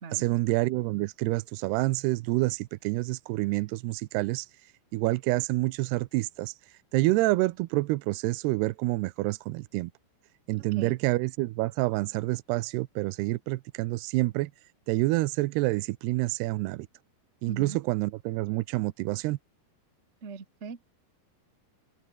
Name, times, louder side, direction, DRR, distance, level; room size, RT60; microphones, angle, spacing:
voice 1, 0.1-9.9 10.5-14.5 14.9-16.9 17.4-19.4, right 20 dB, 85° right, 2.8 m, -28 dB
voice 2, 17.5-17.8 20.2-20.8, right 5 dB, 45° right, 0.8 m, -40 dB
open air
omnidirectional pair, 4.6 m